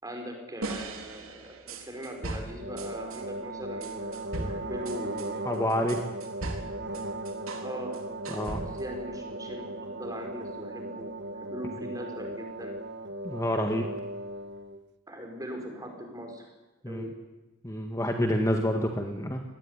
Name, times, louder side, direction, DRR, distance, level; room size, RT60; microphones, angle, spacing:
voice 1, 0.0-5.6 6.9-8.0 8.6-11.1 11.4-12.8 15.1-16.5 16.8-17.1, equal, 15° right, 3 dB, 5.4 m, -40 dB
sound 1, 0.6-3.2 3.8-7.7 7.9-9.0, right 2 dB, 75° right, 3.8 m, -38 dB
sound 2, 2.6-14.8, right 1 dB, 50° right, 1.2 m, -37 dB
voice 2, 5.4-6.0 8.3-8.7 13.2-13.9 16.8-17.1 17.6-19.4, left 1 dB, 15° left, 4 dB, 1.6 m, -28 dB
25.0 x 19.5 x 9.8 m, 1.1 s
head